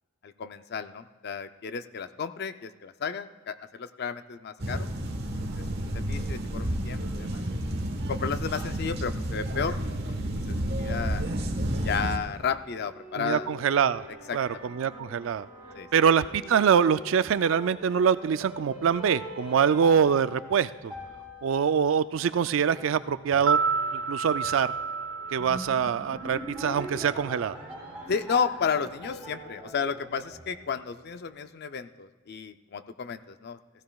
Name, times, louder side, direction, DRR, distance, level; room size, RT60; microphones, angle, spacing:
voice 1, 0.2-4.9 5.4-5.5 5.9-7.4 8.1-9.8 10.5-11.2 11.8-13.5 14.3-14.7 15.7-15.9 28.1-33.6, left 6 dB, 55° left, 10 dB, 0.5 m, -32 dB
sound 1, 4.6-12.2, right 1 dB, 55° right, 1.2 m, -31 dB
sound 2, 12.5-31.0, right 1 dB, 10° right, 4.2 m, -43 dB
voice 2, 13.2-14.1 14.3-15.5 15.9-20.9 21.4-23.6 23.9-24.7 25.3-27.6, right 7 dB, 70° right, 14 dB, 0.4 m, -24 dB
sound 3, 23.5-27.5 27.7-27.9, right 5 dB, 85° right, 1.2 m, -31 dB
16.5 x 15.5 x 2.3 m, 1.3 s
head